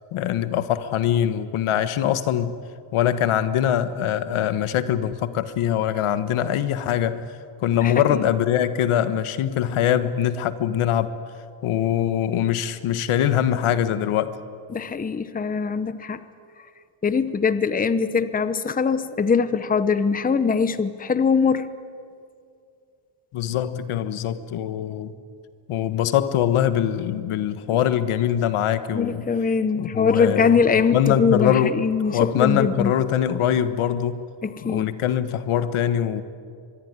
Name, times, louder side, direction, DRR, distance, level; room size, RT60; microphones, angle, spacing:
voice 1, 0.1-2.6 2.9-7.2 7.6-11.1 11.6-14.3 23.3-25.1 25.7-29.3 29.7-34.3 34.6-36.2, left 10 dB, 80° left, 12 dB, 1.5 m, -23 dB
voice 2, 14.7-16.2 17.0-21.7 28.9-32.9 34.4-34.9, left 5 dB, 15° left, 13 dB, 0.8 m, -22 dB
25.0 x 21.5 x 9.8 m, 2.3 s
cardioid pair, 145°, 49 cm